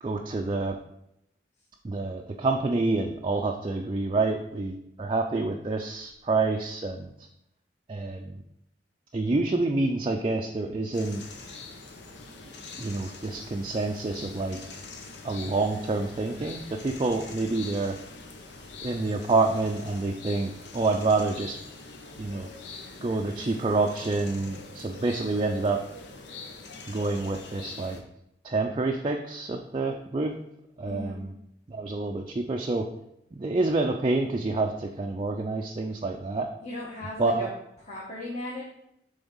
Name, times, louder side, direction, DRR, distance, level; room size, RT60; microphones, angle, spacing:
voice 1, 0.0-0.8 1.8-7.1 7.9-8.4 9.1-11.2 12.8-14.8 15.2-18.0 18.8-21.6 22.2-22.5 23.0-25.8 26.9-28.0 28.4-30.3 30.8-31.3 31.7-32.9 33.3-36.5 37.2-37.5, right 3 dB, 30° right, 2 dB, 0.4 m, -28 dB
sound 1, 10.9-28.0, left 3 dB, 80° left, 0.9 m, -44 dB
voice 2, 30.8-31.3 36.6-37.5 37.8-38.6, left 1 dB, 40° left, -6 dB, 1.3 m, -37 dB
7.2 x 3.5 x 5.4 m, 0.81 s
head